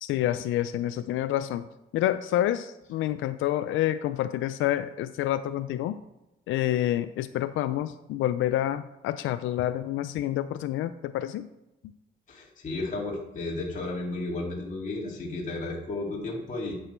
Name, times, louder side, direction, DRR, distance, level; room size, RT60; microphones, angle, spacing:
voice 1, 0.0-1.7 1.9-6.0 6.5-11.5, left 13 dB, 80° left, 11 dB, 0.4 m, -28 dB
voice 2, 12.3-16.7, left 2 dB, 40° left, -4 dB, 2.3 m, -33 dB
9.0 x 6.3 x 4.4 m, 0.92 s
cardioid pair, 90°, 20 cm